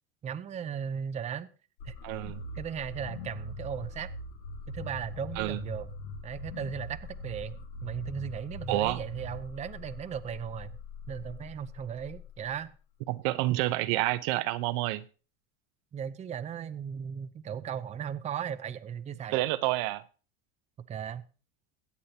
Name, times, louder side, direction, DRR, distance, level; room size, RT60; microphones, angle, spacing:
voice 1, 0.2-1.5 1.8-1.9 2.2-4.1 4.7-5.9 6.2-7.6 7.8-10.7 11.1-12.7 15.9-19.5 20.9-21.2, right 8 dB, 25° right, 0.6 m, -37 dB
sound 1, 1.8-12.7, left 2 dB, 80° left, 1.8 m, -42 dB
voice 2, 2.0-2.4 5.4-5.6 8.7-9.0 13.1-15.0 19.3-20.0, right 17 dB, 65° right, 0.8 m, -29 dB
21.5 x 8.4 x 2.8 m
supercardioid pair, 115°, 29 cm